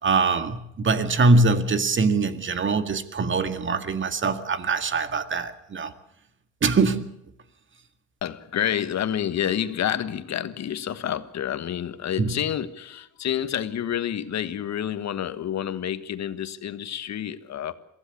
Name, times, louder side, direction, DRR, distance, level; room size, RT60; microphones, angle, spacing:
voice 1, 0.0-5.9 6.6-7.1 12.2-12.4, right 3 dB, 40° right, 2.0 m, -23 dB
voice 2, 8.2-17.7, left 10 dB, 60° left, 1.5 m, -29 dB
23.0 x 15.5 x 8.5 m
cardioid pair, 90°, 30 cm